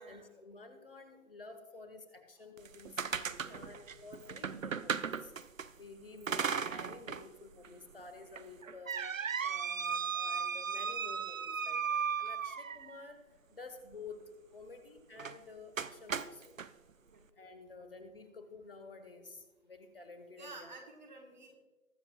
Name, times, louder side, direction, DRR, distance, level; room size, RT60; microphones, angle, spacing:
voice 1, 0.0-5.3 5.8-9.0 9.4-13.2 13.5-16.6 17.4-20.7, left 3 dB, 40° left, 8 dB, 1.3 m, -51 dB
sound 1, 2.6-5.7 6.3-7.3 7.6-7.7 8.4-13.0 15.2-15.4 15.8-16.7, right 6 dB, 70° right, 0.7 m, -36 dB
voice 2, 3.3-3.6 9.8-9.9 17.0-17.2 20.4-21.6, right 3 dB, 35° right, 3 dB, 1.5 m, -51 dB
20.0 x 7.3 x 2.4 m, 1.2 s
figure-of-eight pair, 155°, 41 cm